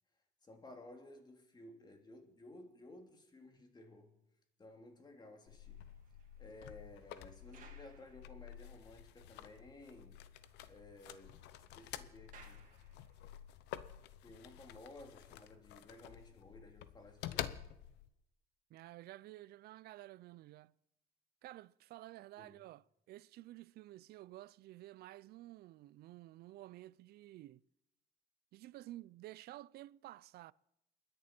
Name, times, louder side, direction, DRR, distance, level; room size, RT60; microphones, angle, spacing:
voice 1, 0.4-4.2 4.6-5.8 6.4-10.2 10.7-11.4 11.7-12.7 14.2-17.6 22.4-22.6, left 2 dB, 25° left, 2.7 m, -56 dB
sound 1, 5.4-9.1 9.4-9.5 9.9-10.0 10.2-13.5 14.2-14.4, right 6 dB, 50° right, 2.8 m, -66 dB
sound 2, 5.5-18.1, left 12 dB, 90° left, 0.8 m, -50 dB
voice 2, 18.7-20.7 21.4-27.6 28.5-30.5, right 16 dB, 70° right, 0.5 m, -52 dB
29.0 x 10.5 x 4.4 m
cardioid pair, 110°, 17 cm